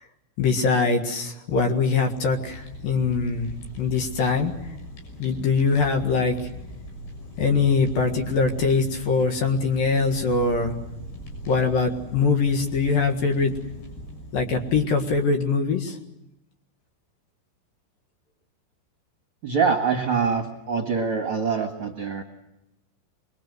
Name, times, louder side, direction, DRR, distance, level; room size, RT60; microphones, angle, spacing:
voice 1, 0.4-3.5 3.8-4.5 5.2-6.4 7.4-10.7 11.5-13.5 14.3-16.0, left 4 dB, 60° left, 4 dB, 3.3 m, -22 dB
Fire, 2.1-15.4, equal, 75° left, 8.7 m, -40 dB
voice 2, 19.4-22.2, right 5 dB, 45° right, 3 dB, 1.9 m, -24 dB
25.5 x 21.5 x 7.9 m, 0.89 s
omnidirectional pair, 4.9 m